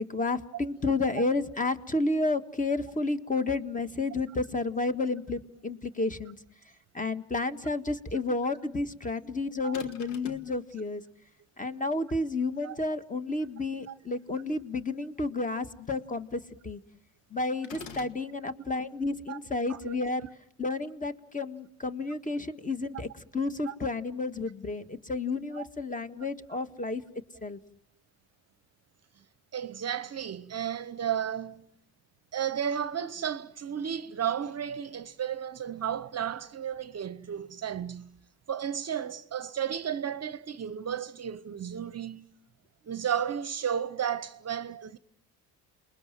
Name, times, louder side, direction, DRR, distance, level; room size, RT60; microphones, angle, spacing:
voice 1, 0.0-6.3 6.9-11.0 11.6-16.8 17.3-20.2 20.6-27.0 27.4-27.6, left 3 dB, 20° left, 1.7 m, -31 dB
sound 1, 9.7-10.5 17.6-18.2, left 5 dB, 75° left, 2.0 m, -44 dB
voice 2, 29.5-31.7 32.3-38.1 38.5-42.3 42.8-45.0, right 8 dB, 35° right, 1.0 m, -33 dB
29.0 x 21.5 x 7.6 m
supercardioid pair, 75°, 43 cm